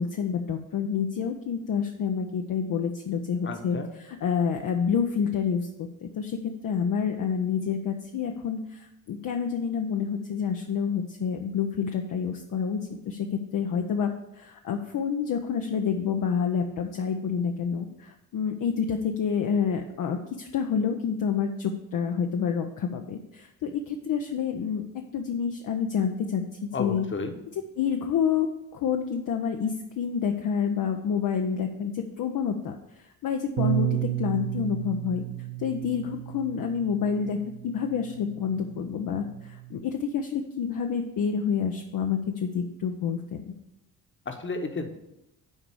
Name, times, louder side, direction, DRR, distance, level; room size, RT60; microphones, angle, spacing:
voice 1, 0.0-24.8 25.1-26.4 26.8-27.0 27.8-32.8 33.2-35.2 35.6-43.5, left 7 dB, 40° left, 3 dB, 0.8 m, -28 dB
voice 2, 3.4-3.9 26.7-27.3 44.3-44.9, left 3 dB, 25° left, 5 dB, 1.3 m, -32 dB
Bass guitar, 33.6-39.8, right 15 dB, 50° right, 0.7 m, -33 dB
8.1 x 4.9 x 7.0 m, 0.89 s
figure-of-eight pair, 45°, 50 cm